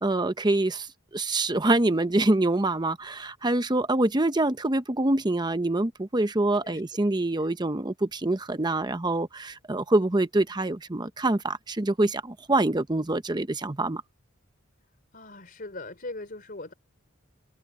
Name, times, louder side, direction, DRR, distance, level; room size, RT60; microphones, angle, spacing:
voice 1, 0.0-0.9 1.1-14.0, right 2 dB, 20° right, 0.8 m, -25 dB
voice 2, 15.1-16.7, left 2 dB, 45° left, 4.2 m, -40 dB
head